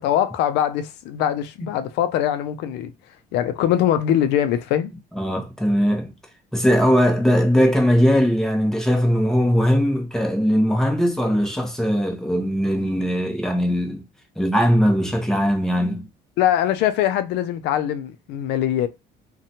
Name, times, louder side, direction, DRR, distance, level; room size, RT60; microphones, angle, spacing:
voice 1, 0.0-2.9 3.3-4.9 16.4-18.9, left 11 dB, 85° left, 0.4 m, -22 dB
voice 2, 5.1-6.1 6.5-14.0 14.4-16.1, equal, 5° left, 0.7 m, -20 dB
2.7 x 2.2 x 2.7 m
cardioid pair, 110°, 17 cm